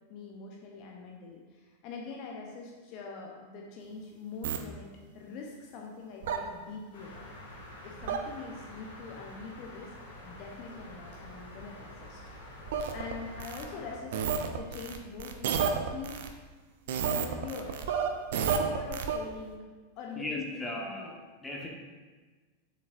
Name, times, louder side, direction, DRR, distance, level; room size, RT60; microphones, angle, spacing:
voice 1, 0.1-4.9 5.1-7.3 7.8-9.9 10.2-12.2 12.9-14.2 14.5-16.3 17.0-17.8 18.6-19.6 20.0-21.1, left 4 dB, 40° left, -1 dB, 0.8 m, -43 dB
sound 1, 4.4-4.6 6.2-6.4 8.0-8.2 12.7-13.7 14.1-16.3 16.9-19.2, right 7 dB, 55° right, 0.5 m, -31 dB
sound 2, 6.9-14.0, left 1 dB, 60° left, 1.9 m, -48 dB
voice 2, 20.1-21.1 21.4-21.7, left 1 dB, 10° left, -2 dB, 1.2 m, -37 dB
7.0 x 6.2 x 2.6 m, 1.4 s
figure-of-eight pair, 90°, 0 cm